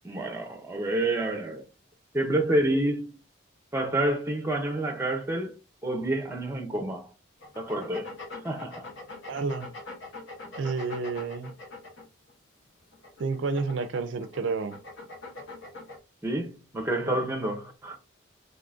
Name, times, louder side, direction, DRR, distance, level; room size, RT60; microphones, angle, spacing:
voice 1, 0.0-1.6 2.1-3.1 3.7-5.5 5.8-7.1 7.6-8.1 8.4-8.9 16.2-18.0, right 1 dB, 10° right, 0.6 m, -28 dB
sound 1, 7.4-12.3 12.9-16.0, left 3 dB, 70° left, 0.8 m, -43 dB
voice 2, 9.3-9.7 10.6-11.5 13.2-14.8 17.1-17.2, right 4 dB, 70° right, 0.4 m, -30 dB
3.7 x 2.6 x 2.4 m
head